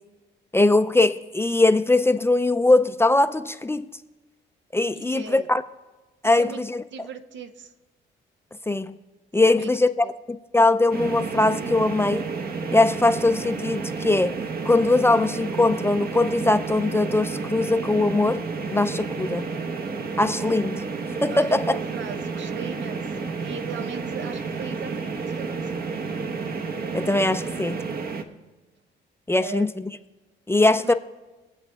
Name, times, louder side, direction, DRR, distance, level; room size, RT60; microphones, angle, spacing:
voice 1, 0.5-3.9 4.7-5.6 6.2-6.8 8.7-9.0 9.3-12.3 12.7-14.4 14.7-18.4 18.7-19.5 20.2-20.8 21.2-21.8 26.9-27.8 29.3-29.9 30.5-30.9, left 2 dB, 10° left, 0.5 m, -21 dB
voice 2, 4.9-5.5 6.2-6.6 6.9-7.7 9.4-9.7 10.0-10.1 21.3-23.0 23.4-25.9 29.4-29.7 30.6-30.9, right 7 dB, 70° right, 0.9 m, -38 dB
sound 1, 10.9-28.2, right 4 dB, 50° right, 1.1 m, -31 dB
23.5 x 7.9 x 3.5 m
cardioid pair, 90°, 20 cm